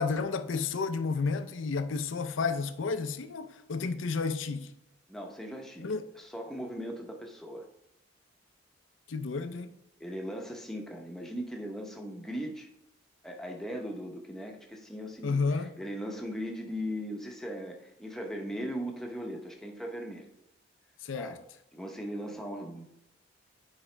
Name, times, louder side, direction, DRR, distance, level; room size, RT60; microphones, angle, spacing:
voice 1, 0.0-4.7 5.8-6.0 9.1-9.7 15.2-15.7 21.0-21.4, left 4 dB, 75° left, 0.5 m, -31 dB
voice 2, 5.1-5.9 6.1-7.6 10.0-12.7 13.2-20.3 21.1-21.4 21.7-22.8, equal, ahead, 0.8 m, -38 dB
8.6 x 4.9 x 3.3 m
head